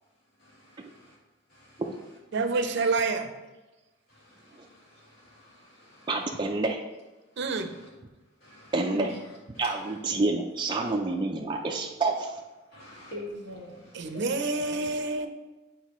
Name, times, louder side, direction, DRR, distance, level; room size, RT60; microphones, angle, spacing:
voice 1, 0.4-1.2 1.5-2.8 4.1-6.5 7.3-7.9 8.4-10.0 10.8-10.9 12.6-15.0, left 1 dB, 55° left, -6 dB, 2.3 m, -46 dB
voice 2, 2.3-3.3 7.4-7.7 13.9-15.3, right 3 dB, 65° right, 7 dB, 0.6 m, -27 dB
voice 3, 6.1-6.8 8.7-9.1 9.6-12.4, right 3 dB, 25° right, 0 dB, 0.4 m, -28 dB
8.3 x 4.6 x 3.1 m, 1.1 s
head